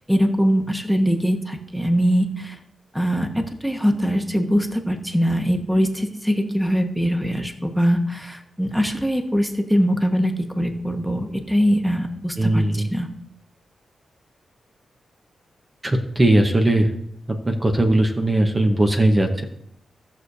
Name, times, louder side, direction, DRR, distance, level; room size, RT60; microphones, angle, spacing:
voice 1, 0.0-2.6 2.9-13.1, equal, ahead, 5 dB, 1.2 m, -22 dB
voice 2, 12.4-12.9 15.8-16.9 17.5-19.4, right 1 dB, 25° right, 4 dB, 1.0 m, -19 dB
17.0 x 6.4 x 2.7 m, 0.74 s
cardioid pair, 80°, 0 cm